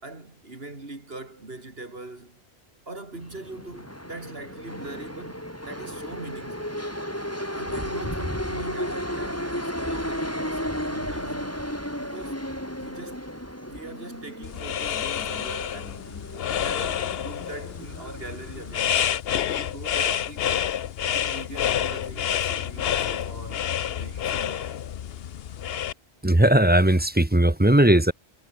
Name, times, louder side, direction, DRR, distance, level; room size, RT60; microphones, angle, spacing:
voice 1, 0.0-2.4 2.9-6.8 7.5-11.6 12.0-12.4 12.8-13.3 13.7-16.0 16.5-24.8, right 2 dB, 70° right, 4.2 m, -41 dB
sound 1, 3.2-19.1, equal, 15° left, 7.6 m, -34 dB
sound 2, 14.4-25.9, left 10 dB, 70° left, 0.9 m, -28 dB
voice 2, 26.2-28.1, right 1 dB, 10° right, 0.8 m, -18 dB
omnidirectional pair, 1.1 m